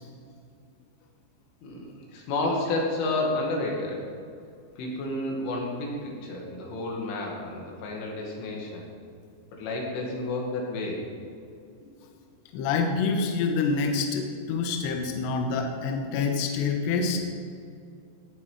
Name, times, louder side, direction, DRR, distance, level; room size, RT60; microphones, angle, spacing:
voice 1, 1.6-4.1 4.8-8.8 9.5-11.0, left 2 dB, 90° left, -2 dB, 4.8 m, -31 dB
voice 2, 12.5-17.2, left 4 dB, 75° left, 2 dB, 3.1 m, -27 dB
18.0 x 8.3 x 5.1 m, 2.4 s
omnidirectional pair, 5.5 m